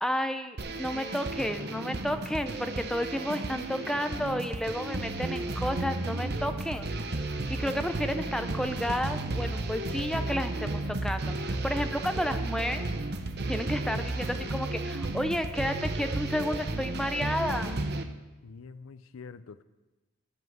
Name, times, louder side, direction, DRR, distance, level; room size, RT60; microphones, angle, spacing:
voice 1, 0.0-6.9 7.5-12.9 13.5-17.8, equal, 5° left, 7 dB, 0.5 m, -31 dB
sound 1, 0.6-18.0, right 2 dB, 50° right, 0.8 m, -33 dB
voice 2, 18.4-19.6, left 5 dB, 80° left, 14 dB, 0.5 m, -46 dB
13.5 x 5.6 x 7.7 m, 1.1 s
head